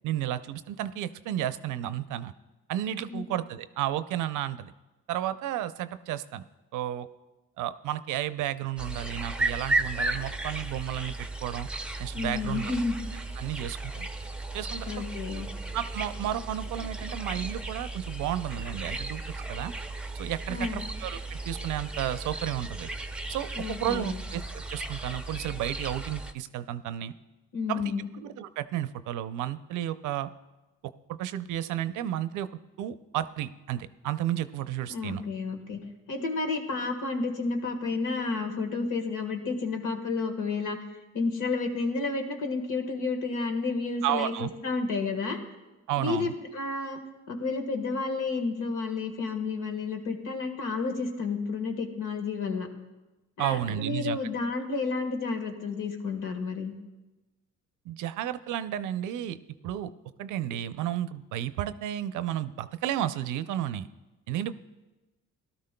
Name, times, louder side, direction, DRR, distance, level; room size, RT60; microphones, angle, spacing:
voice 1, 0.0-2.3 2.7-4.7 5.1-6.4 6.7-7.1 7.6-11.7 12.0-12.7 13.4-14.1 14.5-15.0 15.7-19.7 20.1-22.9 23.3-27.1 27.7-27.8 28.2-30.3 30.8-32.5 32.8-35.2 44.0-44.5 45.9-46.3 53.4-54.2 57.9-59.4 59.6-59.9 60.2-63.9 64.3-64.5, right 12 dB, 85° right, 13 dB, 0.6 m, -32 dB
sound 1, 8.8-26.3, right 2 dB, 5° right, 0.6 m, -35 dB
voice 2, 12.1-12.9 14.9-15.5 20.5-20.9 23.5-24.2 27.5-28.1 34.9-35.8 36.1-40.8 41.1-45.4 46.0-47.0 47.3-52.7 53.4-56.7, left 4 dB, 90° left, 4 dB, 1.5 m, -31 dB
18.0 x 12.5 x 2.2 m, 1.1 s
cardioid pair, 90°, 30 cm